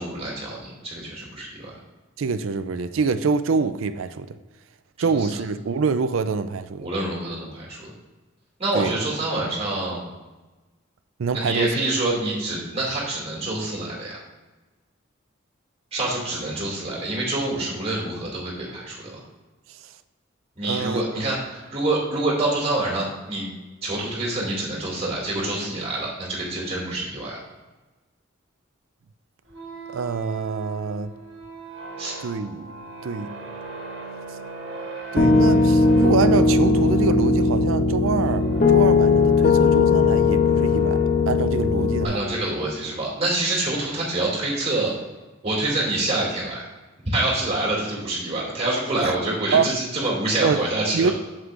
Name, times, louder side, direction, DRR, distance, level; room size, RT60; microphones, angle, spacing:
voice 1, 0.0-1.7 5.0-5.3 6.8-7.9 8.6-10.0 11.3-14.2 15.9-19.2 20.6-23.5 23.8-27.4 32.0-32.1 42.0-44.9 45.4-46.6 47.1-51.1, right 2 dB, 30° right, -5 dB, 2.5 m, -26 dB
voice 2, 2.2-4.3 5.0-6.9 8.7-8.9 11.2-11.7 20.6-21.0 29.9-31.1 32.2-32.7 33.0-33.3 35.1-42.2 49.0-49.1 49.5-49.7 50.4-50.6 50.9-51.1, right 5 dB, 80° right, 11 dB, 0.4 m, -25 dB
sound 1, 29.5-43.2, equal, 60° right, 1.7 m, -37 dB
Piano, 35.2-42.1, left 4 dB, 40° left, 0.5 m, -18 dB
7.9 x 7.6 x 2.5 m, 1.2 s
head